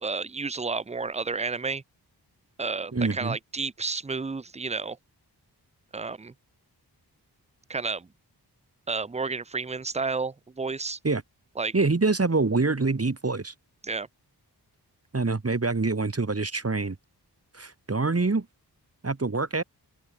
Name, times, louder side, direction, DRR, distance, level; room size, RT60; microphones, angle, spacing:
voice 1, 0.0-1.8 2.6-5.0 5.9-6.3 7.7-8.1 8.9-11.0 11.6-11.7 13.8-14.1, right 4 dB, 15° right, 0.5 m, -31 dB
voice 2, 2.9-3.4 11.0-11.2 11.7-13.5 15.1-17.0 17.5-18.5 19.0-19.6, right 3 dB, 35° right, 2.1 m, -25 dB
open air
wide cardioid pair, 75°, 40 cm